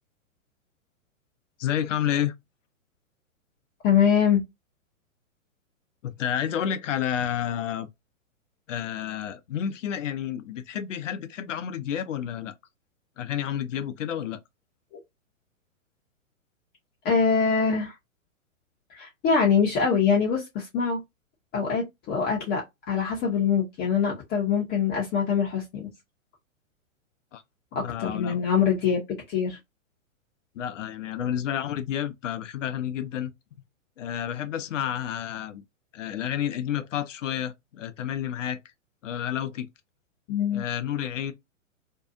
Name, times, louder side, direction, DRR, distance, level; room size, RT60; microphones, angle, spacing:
voice 1, 1.6-2.3 6.0-7.9 8.7-12.5 13.2-14.4 27.3-27.4 27.7-28.4 30.5-33.3 34.0-35.6 35.9-38.6 39.0-39.7 40.5-41.3, left 10 dB, 65° left, 0.7 m, -30 dB
voice 2, 3.8-4.4 17.0-17.9 18.9-21.0 21.5-25.9 27.7-29.6 40.3-40.6, left 6 dB, 25° left, 0.7 m, -24 dB
2.7 x 2.3 x 2.5 m
hypercardioid pair, 125°, 40 cm